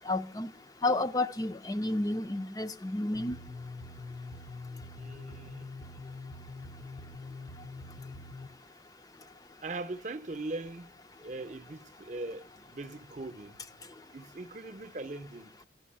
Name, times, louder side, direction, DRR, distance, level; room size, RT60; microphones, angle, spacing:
voice 1, 0.1-0.5 0.8-3.4, left 2 dB, 20° left, 0.5 m, -31 dB
sound 1, 3.1-8.5, left 3 dB, 70° left, 0.9 m, -44 dB
voice 2, 4.9-5.7 9.6-10.9 11.2-13.7 14.1-15.6, right 2 dB, 40° right, 0.7 m, -40 dB
12.0 x 6.2 x 8.6 m
head